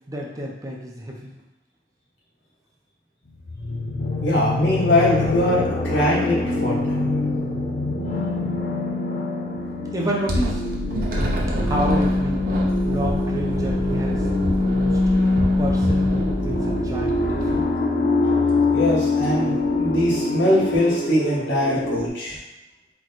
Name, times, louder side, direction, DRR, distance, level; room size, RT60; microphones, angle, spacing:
voice 1, 0.1-1.3 9.9-10.6 11.6-12.5 12.9-15.0 15.6-17.7, right 1 dB, 20° right, -2 dB, 0.6 m, -29 dB
sound 1, 3.4-22.1, left 2 dB, 55° left, 0.8 m, -26 dB
voice 2, 4.2-7.1 18.7-22.4, left 1 dB, 85° left, -6 dB, 1.4 m, -22 dB
sound 2, 10.3-17.6, left 1 dB, 50° right, 0.7 m, -22 dB
4.6 x 2.2 x 4.0 m, 1.0 s
head